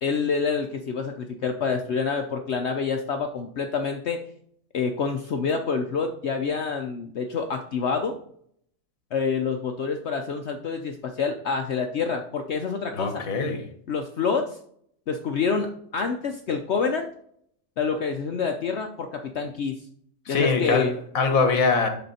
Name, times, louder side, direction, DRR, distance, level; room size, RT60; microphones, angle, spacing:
voice 1, 0.0-4.2 4.7-8.2 9.1-13.2 13.9-14.6 15.1-17.1 17.8-19.9 20.3-21.0, left 5 dB, 60° left, 5 dB, 0.9 m, -27 dB
voice 2, 12.9-13.7 20.3-21.9, left 4 dB, 75° left, 6 dB, 1.7 m, -23 dB
11.5 x 3.8 x 4.2 m, 0.65 s
omnidirectional pair, 1.5 m